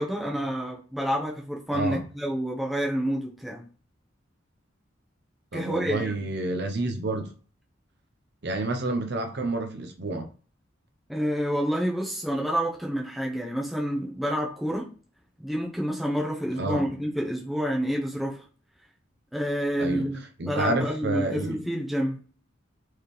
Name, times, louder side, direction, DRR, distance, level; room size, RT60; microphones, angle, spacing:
voice 1, 0.0-3.7 5.5-6.1 11.1-14.9 15.4-18.4 19.3-22.2, equal, ahead, 0.8 m, -28 dB
voice 2, 1.7-2.0 5.5-7.3 8.4-10.3 16.6-16.8 19.8-20.1 20.4-21.6, right 2 dB, 60° right, 0.7 m, -29 dB
4.6 x 3.6 x 3.1 m
head